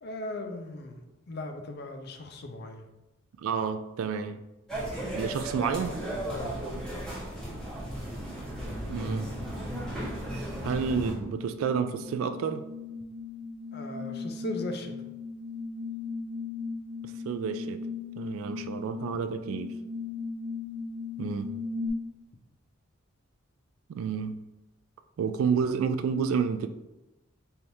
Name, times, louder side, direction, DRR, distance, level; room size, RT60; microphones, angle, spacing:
voice 1, 0.0-2.9 6.3-6.6 13.7-14.9, left 1 dB, 50° left, 5 dB, 0.5 m, -38 dB
voice 2, 3.4-4.4 5.1-6.0 8.9-9.3 10.6-12.7 17.2-17.8 18.2-19.7 21.2-21.5 23.9-24.4 25.2-26.7, right 6 dB, 85° right, 11 dB, 0.3 m, -30 dB
sound 1, 4.7-11.1, right 1 dB, 5° left, 1.2 m, -35 dB
sound 2, 7.1-21.9, left 4 dB, 50° right, 0.6 m, -39 dB
4.4 x 3.5 x 2.6 m, 1.0 s
head